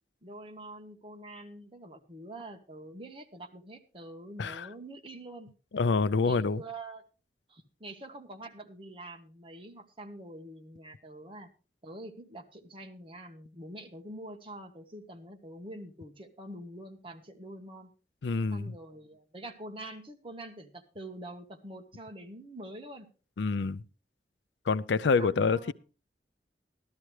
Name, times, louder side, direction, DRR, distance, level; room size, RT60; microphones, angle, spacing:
voice 1, 0.2-5.5 6.2-7.0 7.5-11.5 11.8-17.9 18.5-23.1 25.2-25.7, right 1 dB, 30° right, 1.3 m, -45 dB
voice 2, 4.4-4.7 5.7-6.6 18.2-18.7 23.4-23.8 24.7-25.7, left 4 dB, 90° left, 0.5 m, -27 dB
13.5 x 13.0 x 3.2 m
head